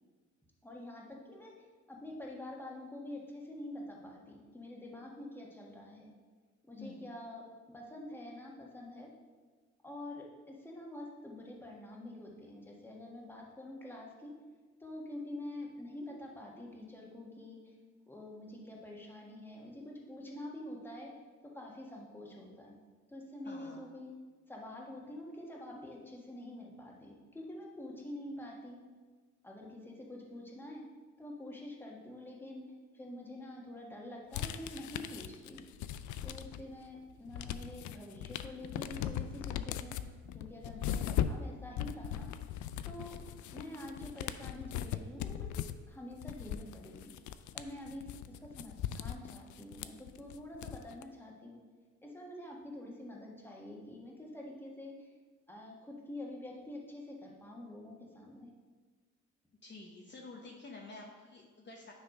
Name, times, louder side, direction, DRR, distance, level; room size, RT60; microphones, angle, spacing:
voice 1, 0.6-1.5 1.9-6.1 6.7-7.4 7.7-9.1 9.8-14.3 14.8-17.7 18.1-21.1 21.5-22.7 23.1-24.1 24.5-28.8 29.4-30.8 31.2-32.6 32.9-35.6 36.2-39.9 40.3-42.3 42.8-47.1 47.5-51.6 52.0-55.1 55.5-58.5, left 1 dB, 5° left, -2 dB, 1.5 m, -47 dB
voice 2, 6.8-7.1 23.4-23.8 40.7-41.0 59.6-61.9, left 2 dB, 35° left, -1 dB, 1.0 m, -50 dB
sound 1, 34.3-36.8 37.1-51.0, left 10 dB, 75° left, 0.5 m, -39 dB
9.7 x 3.3 x 5.3 m, 1.4 s
cardioid pair, 90°, 30 cm